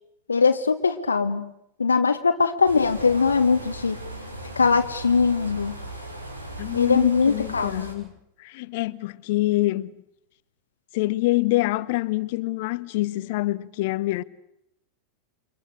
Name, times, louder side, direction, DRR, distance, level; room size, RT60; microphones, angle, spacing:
voice 1, 0.3-1.5 1.8-4.0 4.6-5.8 6.7-7.9, left 5 dB, 75° left, 1.4 m, -21 dB
sound 1, 2.6-7.9, right 1 dB, 85° right, 7.4 m, -38 dB
voice 2, 6.6-8.1 8.4-9.9 10.9-14.2, left 19 dB, 50° left, 1.0 m, -25 dB
29.0 x 25.5 x 6.5 m
figure-of-eight pair, 90°, 0 cm